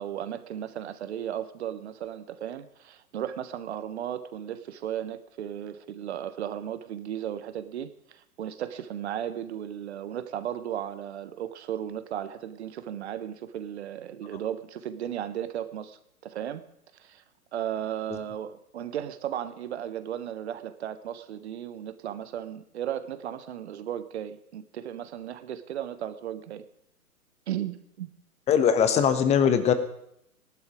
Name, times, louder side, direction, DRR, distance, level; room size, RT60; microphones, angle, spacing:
voice 1, 0.0-16.6 17.0-17.2 17.5-26.6 27.5-28.1, right 10 dB, 45° right, 1.3 m, -35 dB
voice 2, 28.5-29.7, left 8 dB, 15° left, 1.1 m, -21 dB
17.5 x 11.5 x 5.1 m
figure-of-eight pair, 120°, 44 cm